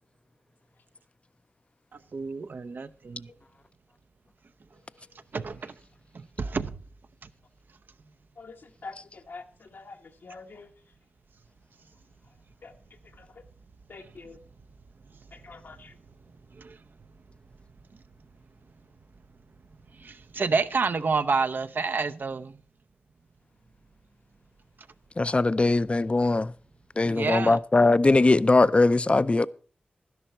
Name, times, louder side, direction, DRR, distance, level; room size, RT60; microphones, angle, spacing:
voice 1, 2.1-3.3 5.3-5.7 6.1-6.8 16.5-16.8 19.9-22.6 27.0-27.6, right 4 dB, 70° right, 0.7 m, -29 dB
voice 2, 8.4-10.0 10.2-10.7 12.6-12.7 13.2-13.3 13.9-14.4 15.3-15.9, left 3 dB, 75° left, 1.2 m, -45 dB
voice 3, 25.2-26.5 27.0-29.5, left 2 dB, 35° left, 0.5 m, -21 dB
12.0 x 11.0 x 4.4 m
cardioid pair, 50°, 3 cm